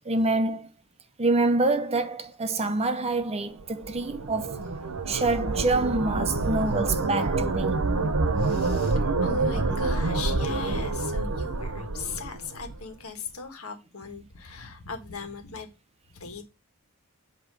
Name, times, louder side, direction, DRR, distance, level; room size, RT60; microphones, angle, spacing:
voice 1, 0.1-0.7 1.2-4.6 5.1-7.8, right 2 dB, 30° right, 0.7 m, -26 dB
sound 1, 3.6-12.8, right 3 dB, 85° right, 0.9 m, -27 dB
voice 2, 8.4-15.7 16.1-16.4, left 4 dB, 85° left, 1.5 m, -38 dB
8.0 x 3.0 x 6.2 m
head